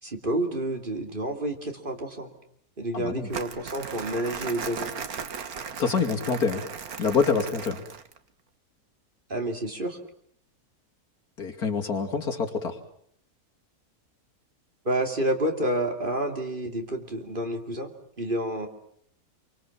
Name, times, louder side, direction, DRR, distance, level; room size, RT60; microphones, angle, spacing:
voice 1, 0.0-2.3 2.8-4.9 9.3-10.0 14.8-17.9 18.2-18.7, right 1 dB, 30° right, 4 dB, 3.0 m, -29 dB
voice 2, 2.9-3.3 5.8-6.6 7.0-7.8 11.4-12.8, left 5 dB, 70° left, 3 dB, 3.1 m, -26 dB
Crumpling crinkling, 3.3-8.2, right 6 dB, 70° right, 1.8 m, -37 dB
27.5 x 25.0 x 7.3 m, 0.66 s
omnidirectional pair, 1.7 m